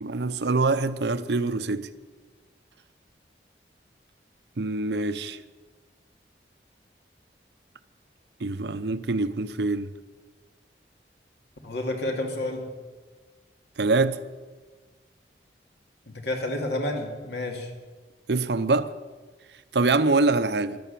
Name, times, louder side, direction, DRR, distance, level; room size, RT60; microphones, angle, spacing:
voice 1, 0.0-1.9 4.6-5.4 8.4-9.9 13.8-14.2 18.3-18.9 19.7-20.8, right 3 dB, 70° right, 0.7 m, -24 dB
voice 2, 11.6-12.6 16.1-17.7, left 1 dB, 75° left, 2.5 m, -30 dB
12.5 x 12.0 x 7.6 m
head